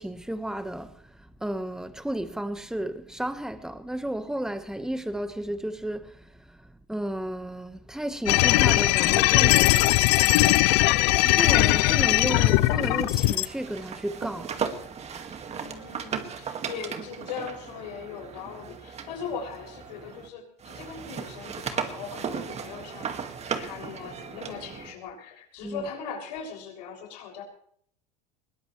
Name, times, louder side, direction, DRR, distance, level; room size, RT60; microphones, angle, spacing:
voice 1, 0.0-10.0 11.2-14.5 25.6-25.9, right 1 dB, 5° right, 1.4 m, -33 dB
sound 1, 8.3-13.5, left 19 dB, 75° left, 0.7 m, -20 dB
sound 2, 9.7-20.3 20.6-24.9, right 6 dB, 30° right, 2.0 m, -37 dB
voice 2, 15.5-27.4, left 6 dB, 90° left, 6.7 m, -39 dB
21.0 x 18.5 x 3.3 m
supercardioid pair, 115°, 21 cm